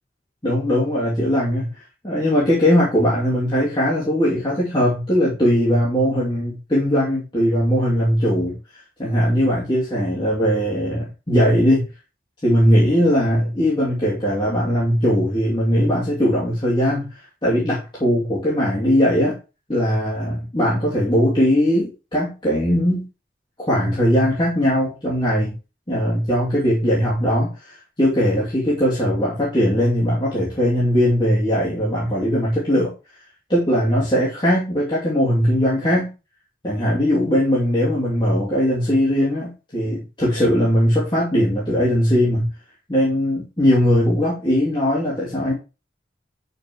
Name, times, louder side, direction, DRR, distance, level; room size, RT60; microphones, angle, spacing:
voice 1, 0.4-1.7 2.0-8.5 9.0-11.9 12.4-19.4 19.7-23.0 23.6-25.6 25.9-32.9 33.5-36.1 36.6-42.5 42.9-45.5, equal, 25° left, -8 dB, 2.8 m, -19 dB
8.7 x 6.7 x 3.1 m, 0.30 s
head